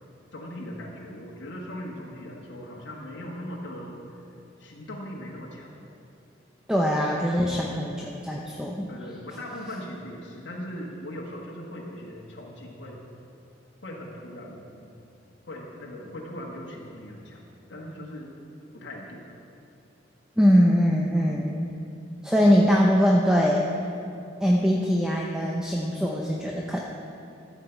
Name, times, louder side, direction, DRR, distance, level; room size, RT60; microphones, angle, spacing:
voice 1, 0.3-4.3 4.6-5.7 7.5-7.8 8.9-13.0 13.8-14.9 15.4-17.4 17.7-18.3 18.7-19.4 21.1-21.2, left 1 dB, 80° left, -3 dB, 1.4 m, -39 dB
voice 2, 6.7-8.9 20.4-21.7 22.2-23.7 24.4-26.8, equal, 5° right, -2 dB, 0.6 m, -22 dB
13.5 x 7.4 x 4.5 m, 2.6 s
head